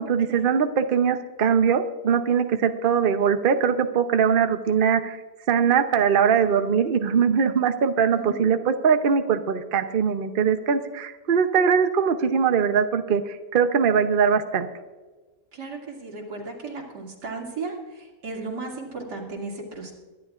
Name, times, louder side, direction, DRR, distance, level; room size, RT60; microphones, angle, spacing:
voice 1, 0.0-5.2 5.5-14.7, right 7 dB, 50° right, 8 dB, 0.7 m, -21 dB
voice 2, 8.1-8.4 15.5-19.9, right 3 dB, 85° right, -1 dB, 3.1 m, -35 dB
23.0 x 11.0 x 2.5 m, 1.3 s
omnidirectional pair, 1.8 m